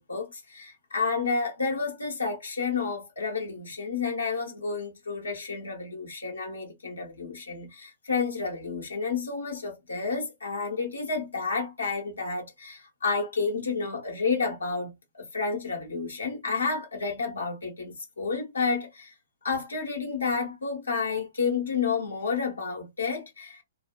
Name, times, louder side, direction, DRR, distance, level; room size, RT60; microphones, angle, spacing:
voice 1, 0.0-19.1 19.4-23.6, left 4 dB, 75° left, 0.9 m, -30 dB
2.3 x 2.1 x 2.5 m
figure-of-eight pair, 115°, 0 cm